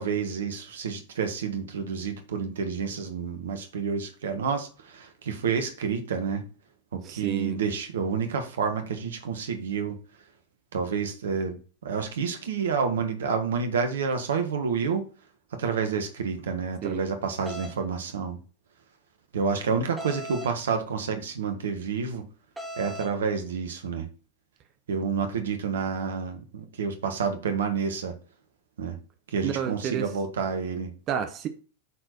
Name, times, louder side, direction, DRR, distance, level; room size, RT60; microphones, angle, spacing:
voice 1, 0.0-6.4 6.9-10.0 10.7-15.0 15.5-18.4 19.3-22.2 22.8-24.1 24.9-28.1 28.8-29.0 29.3-30.9, right 6 dB, 65° right, 1.5 m, -29 dB
voice 2, 7.0-7.6 16.8-17.0 29.4-30.1 31.1-31.5, right 8 dB, 35° right, 1.0 m, -30 dB
sound 1, 17.5-17.7 20.0-20.5 22.6-23.1, equal, 5° right, 2.1 m, -38 dB
8.3 x 4.6 x 4.4 m
figure-of-eight pair, 90°, 0 cm